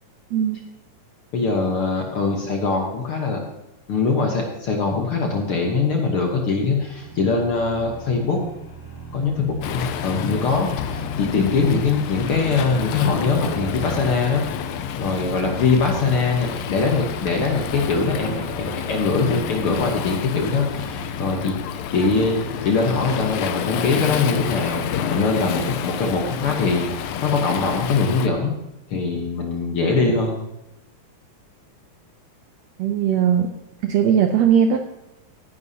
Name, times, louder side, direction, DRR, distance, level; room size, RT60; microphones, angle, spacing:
voice 1, 1.3-3.4 3.9-8.4 9.1-14.4 15.0-21.5 21.9-28.5 28.9-30.4, left 4 dB, 60° left, 1 dB, 1.6 m, -22 dB
sound 1, 6.6-21.4, right 2 dB, 40° left, 2.8 m, -38 dB
Waves surf, 9.6-28.3, left 8 dB, 75° left, 1.6 m, -29 dB
voice 2, 32.8-33.5 33.8-34.8, right 8 dB, 75° right, 5 dB, 1.6 m, -18 dB
16.0 x 10.5 x 2.8 m, 0.91 s
omnidirectional pair, 3.7 m